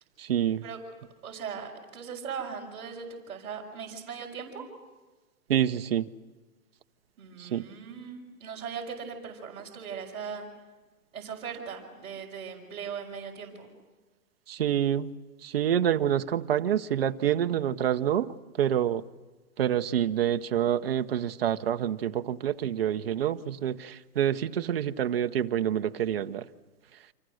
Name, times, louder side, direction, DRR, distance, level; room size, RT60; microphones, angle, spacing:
voice 1, 0.2-0.6 5.5-6.1 7.4-7.6 14.5-15.1 15.4-19.0 19.6-26.5, right 10 dB, 40° right, 0.9 m, -27 dB
voice 2, 1.2-4.6 7.2-10.5 11.1-13.7, right 6 dB, 10° right, 4.3 m, -39 dB
29.0 x 26.5 x 6.4 m
hypercardioid pair, 175°, 45 cm